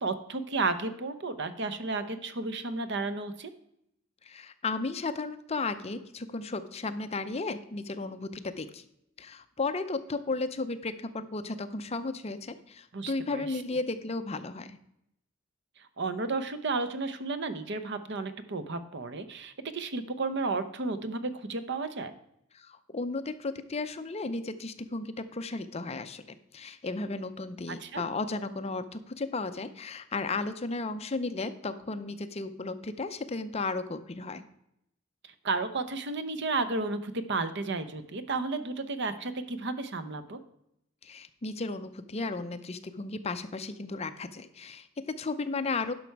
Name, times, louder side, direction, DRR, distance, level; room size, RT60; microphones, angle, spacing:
voice 1, 0.0-3.5 12.9-13.5 16.0-22.1 27.7-28.0 35.4-40.4, right 3 dB, 60° right, 11 dB, 0.8 m, -32 dB
voice 2, 4.2-8.9 9.2-14.8 22.5-34.4 41.0-45.9, left 3 dB, 30° left, 10 dB, 0.6 m, -34 dB
11.0 x 6.0 x 4.6 m, 0.78 s
head